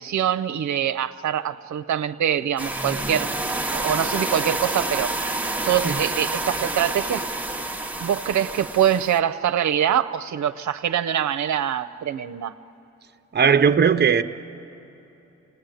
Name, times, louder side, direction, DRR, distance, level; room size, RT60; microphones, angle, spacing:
voice 1, 0.0-3.3 3.7-5.1 5.6-7.3 8.0-12.6, right 10 dB, 80° right, 10 dB, 0.6 m, -24 dB
sound 1, 2.6-9.2, right 2 dB, 5° right, 0.9 m, -28 dB
voice 2, 13.3-14.2, right 7 dB, 35° right, 8 dB, 0.8 m, -18 dB
27.5 x 19.0 x 9.2 m, 3.0 s
cardioid pair, 100°, 29 cm